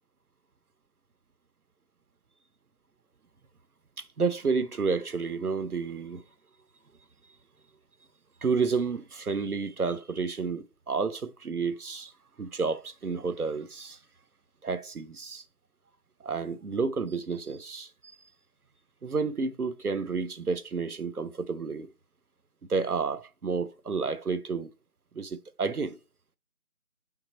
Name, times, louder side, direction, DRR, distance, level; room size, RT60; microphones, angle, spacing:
voice 1, 4.0-6.2 8.4-12.1 12.4-14.0 14.6-15.4 16.2-18.2 19.0-21.9 22.7-24.7 25.1-26.0, right 4 dB, 75° right, 1.0 m, -30 dB
6.6 x 5.9 x 4.3 m
figure-of-eight pair, 175°, 45 cm